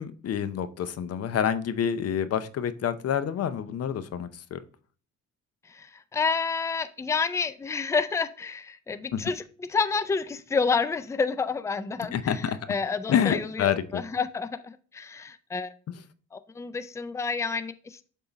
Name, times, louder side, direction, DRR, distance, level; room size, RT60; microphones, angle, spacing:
voice 1, 0.0-4.6 9.1-9.2 12.1-12.6 13.1-14.0, left 8 dB, 55° left, 13 dB, 0.6 m, -27 dB
voice 2, 5.6-15.7 16.3-18.1, left 5 dB, 10° left, 13 dB, 0.4 m, -29 dB
7.1 x 3.8 x 3.9 m, 0.42 s
cardioid pair, 90°, 30 cm